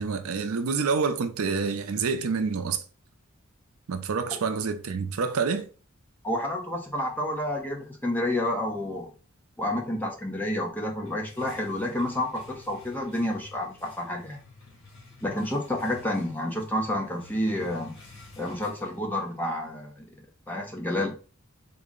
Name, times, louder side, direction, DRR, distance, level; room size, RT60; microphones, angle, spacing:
voice 1, 0.0-2.8 3.9-5.7, right 5 dB, 80° right, 0.5 m, -27 dB
voice 2, 6.2-9.1 9.6-14.4 15.2-18.0 18.4-20.0 20.5-21.2, left 1 dB, 10° left, 0.7 m, -29 dB
sound 1, 11.0-19.5, left 3 dB, 75° left, 1.2 m, -51 dB
3.8 x 2.1 x 3.6 m
head